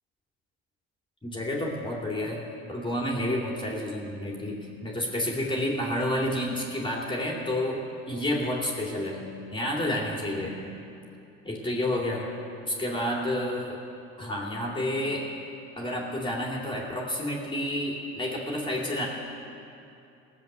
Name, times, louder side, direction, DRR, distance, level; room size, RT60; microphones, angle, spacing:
voice 1, 1.2-2.4 2.7-7.8 8.1-10.7 11.4-12.3 12.7-13.8 14.2-15.3 15.8-19.1, left 1 dB, 15° left, -2 dB, 2.7 m, -30 dB
17.0 x 7.8 x 6.8 m, 2.7 s
supercardioid pair, 90°, 31 cm